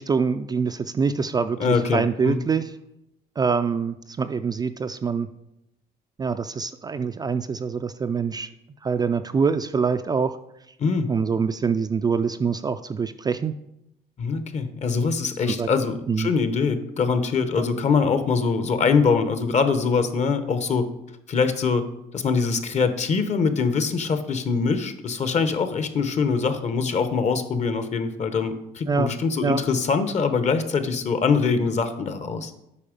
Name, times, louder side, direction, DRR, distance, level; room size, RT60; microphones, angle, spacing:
voice 1, 0.0-2.7 3.4-5.3 6.2-8.5 8.8-10.4 11.1-13.5 15.5-15.7 16.1-16.3 17.6-17.7 28.9-29.1 29.4-29.6, right 5 dB, 25° right, 9 dB, 0.3 m, -25 dB
voice 2, 1.6-2.4 10.8-11.1 14.2-20.9 21.3-21.8 22.1-32.5, left 5 dB, 45° left, 10 dB, 0.9 m, -23 dB
8.4 x 5.5 x 5.1 m, 0.84 s
cardioid pair, 110°, 17 cm